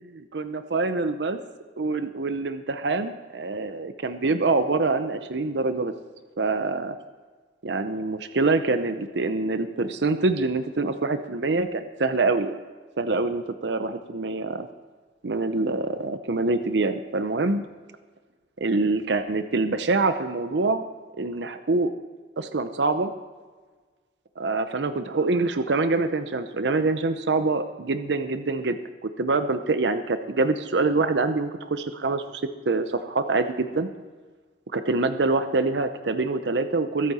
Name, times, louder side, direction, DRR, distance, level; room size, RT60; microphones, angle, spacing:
voice 1, 0.3-1.4 1.8-5.9 6.4-7.0 7.6-12.6 13.0-14.7 15.2-17.6 18.6-20.8 21.2-21.9 22.4-23.1 24.4-33.9 34.7-37.1, right 3 dB, 80° right, 10 dB, 0.7 m, -25 dB
22.0 x 8.5 x 4.2 m, 1.4 s
head